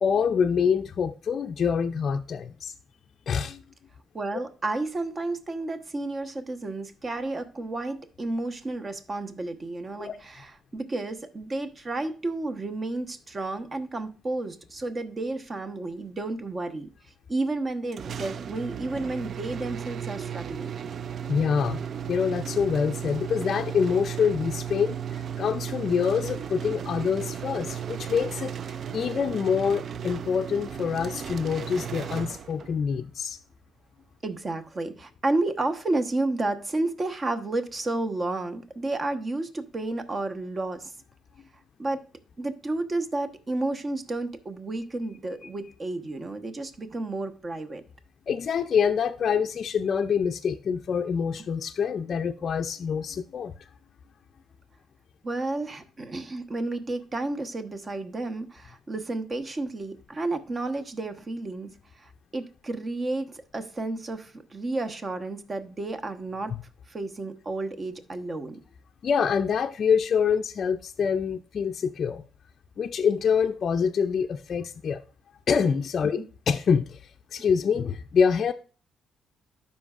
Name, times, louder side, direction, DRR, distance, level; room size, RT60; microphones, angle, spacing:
voice 1, 0.0-2.7 3.3-3.6 10.0-10.2 21.3-21.8 22.1-33.4 45.4-45.5 48.3-53.7 69.0-72.2 72.8-75.0 75.5-77.0 77.3-78.5, left 6 dB, 50° left, 0.4 m, -26 dB
voice 2, 4.1-16.9 17.3-20.7 34.2-40.9 41.8-42.0 42.4-47.8 55.2-66.5 66.9-68.6, right 2 dB, 35° right, 1.0 m, -31 dB
sound 1, 17.9-32.9, right 8 dB, 55° right, 0.3 m, -35 dB
12.5 x 5.4 x 2.4 m
cardioid pair, 90°, 0 cm